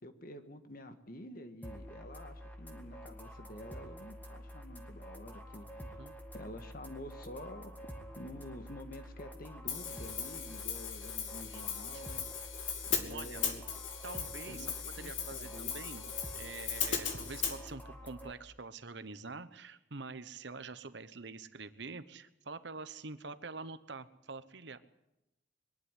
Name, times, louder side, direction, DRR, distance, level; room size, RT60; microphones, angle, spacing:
voice 1, 0.0-6.0 6.3-7.7 8.1-12.2 12.9-13.6 14.5-15.7, left 1 dB, 45° left, 8 dB, 1.7 m, -49 dB
sound 1, 1.6-18.3, equal, 10° left, 1.7 m, -48 dB
voice 2, 5.8-6.1 11.5-11.6 11.9-12.0 13.1-13.4 14.0-16.0 16.3-24.8, right 3 dB, 60° right, 13 dB, 1.1 m, -46 dB
Hi-hat, 9.7-17.6, left 8 dB, 75° left, 2.5 m, -38 dB
22.5 x 11.5 x 9.9 m, 0.91 s
head